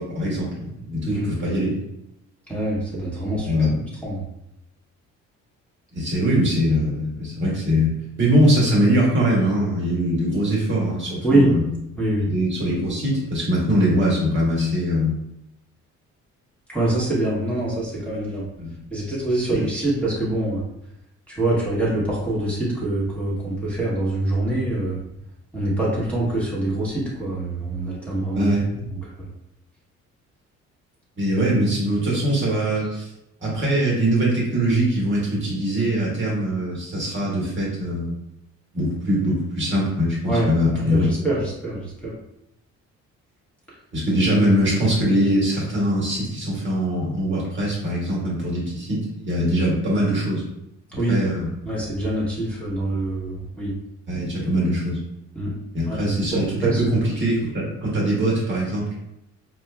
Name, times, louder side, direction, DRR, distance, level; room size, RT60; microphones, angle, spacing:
voice 1, 0.0-1.8 3.3-3.9 5.9-11.7 12.3-15.2 18.6-18.7 19.5-19.7 28.3-28.7 31.2-33.1 33.4-38.2 38.7-41.1 43.9-50.4 51.1-51.5 54.1-55.0 55.7-58.8, equal, 40° right, -5 dB, 1.3 m, -22 dB
voice 2, 2.5-3.5 4.0-4.2 11.2-11.5 12.0-12.2 16.7-18.4 18.9-20.6 21.3-25.0 25.5-28.5 40.3-40.5 40.7-41.8 42.0-42.1 51.0-51.2 51.6-53.7 55.4-55.5 55.8-56.8, right 1 dB, 5° left, -8 dB, 1.2 m, -24 dB
4.3 x 2.3 x 2.3 m, 0.83 s
cardioid pair, 90°, 30 cm